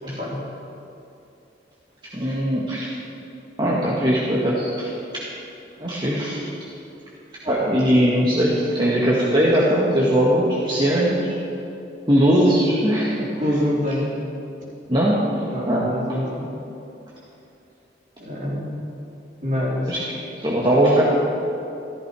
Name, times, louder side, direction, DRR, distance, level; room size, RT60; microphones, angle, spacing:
voice 1, 0.0-0.4 12.5-12.6 13.4-14.2 15.5-16.5 18.2-18.8 19.4-19.9, left 1 dB, 45° right, -5 dB, 3.8 m, -26 dB
voice 2, 2.1-2.9 3.6-4.9 5.8-6.5 7.4-11.4 12.1-13.4 14.9-15.2 15.6-15.9 19.9-20.0 20.4-21.0, equal, 25° right, -6 dB, 1.6 m, -20 dB
14.0 x 13.5 x 4.8 m, 2.8 s
head